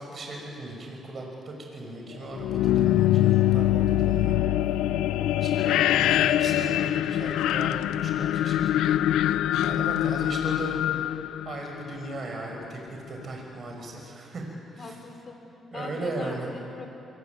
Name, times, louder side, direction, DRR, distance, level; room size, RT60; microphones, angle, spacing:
voice 1, 0.0-4.4 5.4-9.0 9.6-10.8 11.4-12.8 13.1-14.4 14.8-14.9 15.7-16.5, right 2 dB, 45° right, 1 dB, 5.7 m, -37 dB
sound 1, 2.3-12.2, left 12 dB, 90° left, 0.6 m, -24 dB
voice 2, 14.8-15.4 15.7-16.9, left 4 dB, 45° left, 4 dB, 4.7 m, -41 dB
24.5 x 22.0 x 9.4 m, 2.7 s
cardioid pair, 90°, 0 cm